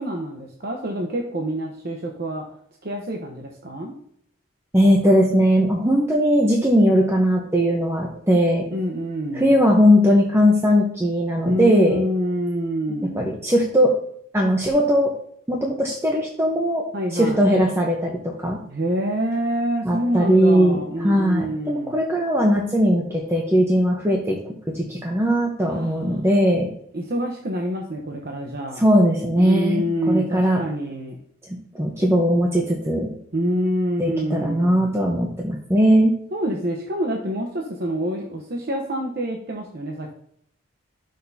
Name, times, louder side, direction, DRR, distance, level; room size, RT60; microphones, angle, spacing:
voice 1, 0.0-2.4 2.8-3.9 8.7-9.5 11.4-13.3 16.9-17.5 18.7-21.9 25.7-26.2 26.9-28.8 29.4-31.2 33.3-34.9 36.3-40.1, equal, 50° right, 0 dB, 0.9 m, -27 dB
voice 2, 4.7-8.6 9.3-12.0 13.1-13.9 14.3-15.1 15.5-16.9 17.1-18.6 19.8-26.7 28.8-30.6 31.7-33.1 34.0-36.2, equal, 15° right, -1 dB, 0.9 m, -19 dB
12.5 x 6.5 x 2.8 m, 0.68 s
head